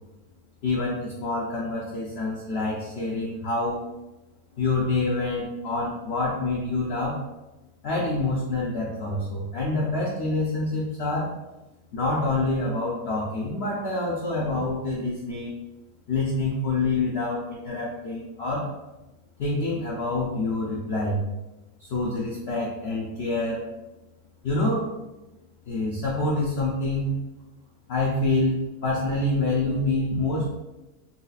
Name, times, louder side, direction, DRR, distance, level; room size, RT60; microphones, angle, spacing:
voice 1, 0.6-3.8 4.6-7.2 7.8-11.3 11.9-15.6 16.1-18.7 19.4-21.2 21.8-23.6 24.4-24.9 25.7-27.2 27.9-30.5, left 2 dB, 75° left, -4 dB, 0.5 m, -26 dB
3.9 x 2.9 x 2.3 m, 1.0 s
omnidirectional pair, 1.8 m